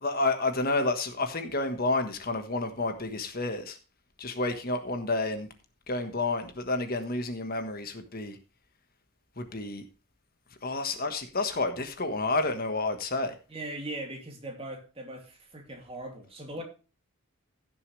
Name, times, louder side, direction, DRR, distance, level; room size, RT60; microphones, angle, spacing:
voice 1, 0.0-3.8 4.2-5.5 5.9-8.4 9.4-9.8 10.6-13.3, left 2 dB, 40° left, 1.4 m, -30 dB
voice 2, 13.5-16.6, right 1 dB, 25° right, 2.7 m, -39 dB
16.0 x 6.9 x 3.3 m
head